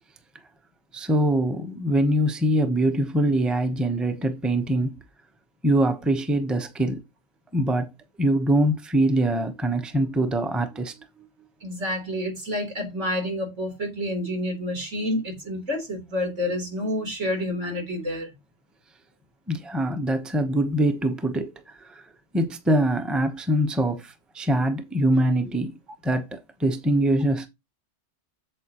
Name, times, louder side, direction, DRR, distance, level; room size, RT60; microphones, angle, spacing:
voice 1, 0.9-5.0 5.6-7.0 7.5-7.9 8.2-10.9 19.5-22.0 22.3-25.8 26.0-27.5, right 1 dB, ahead, 0.8 m, -23 dB
voice 2, 11.6-18.3, left 1 dB, 85° right, 3.9 m, -29 dB
8.6 x 7.3 x 3.0 m
omnidirectional pair, 1.2 m